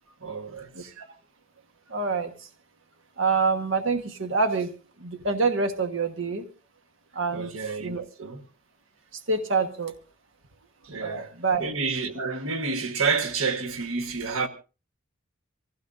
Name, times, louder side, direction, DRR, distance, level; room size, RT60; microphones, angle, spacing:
voice 1, 0.2-0.9 7.3-8.5 10.8-11.3 11.6-14.5, right 4 dB, 85° right, 1.4 m, -29 dB
voice 2, 0.7-1.1 1.9-2.5 3.2-4.7 5.0-6.5 7.1-7.5 7.8-8.0 9.1-9.9 11.0-11.6, right 4 dB, 65° right, 1.3 m, -26 dB
25.5 x 16.0 x 2.6 m
head